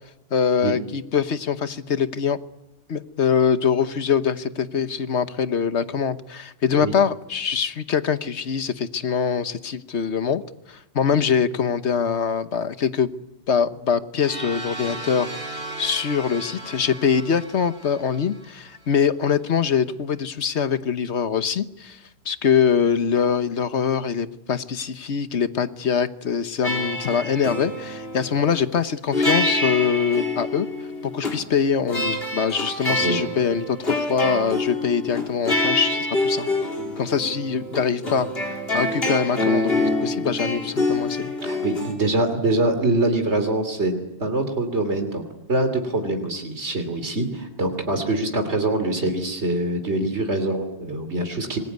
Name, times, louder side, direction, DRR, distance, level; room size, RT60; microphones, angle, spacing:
voice 1, 0.3-2.4 2.9-10.4 10.7-13.1 13.5-15.3 15.8-22.0 22.2-30.7 31.0-36.5 37.0-38.3 38.7-41.3, left 7 dB, 85° left, 12 dB, 1.4 m, -23 dB
sound 1, 14.2-19.0, right 2 dB, 50° right, 4.8 m, -36 dB
sound 2, 26.6-28.6 29.1-31.4 31.9-41.9, left 2 dB, 60° left, 4.4 m, -26 dB
voice 2, 41.4-43.9 44.2-45.2 45.5-51.6, right 2 dB, 85° right, 6 dB, 3.3 m, -24 dB
26.0 x 21.5 x 9.5 m, 0.94 s
omnidirectional pair, 1.1 m